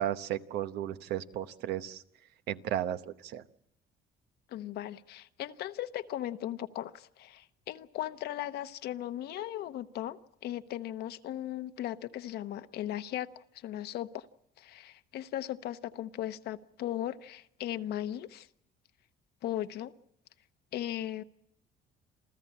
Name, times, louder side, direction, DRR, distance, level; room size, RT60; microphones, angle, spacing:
voice 1, 0.0-2.0 2.5-3.4, right 11 dB, 80° right, 10 dB, 1.0 m, -34 dB
voice 2, 4.5-14.2 14.6-18.5 19.4-19.9 20.7-21.2, left 12 dB, 70° left, 10 dB, 1.0 m, -37 dB
28.0 x 14.5 x 8.6 m, 0.78 s
cardioid pair, 110°, 17 cm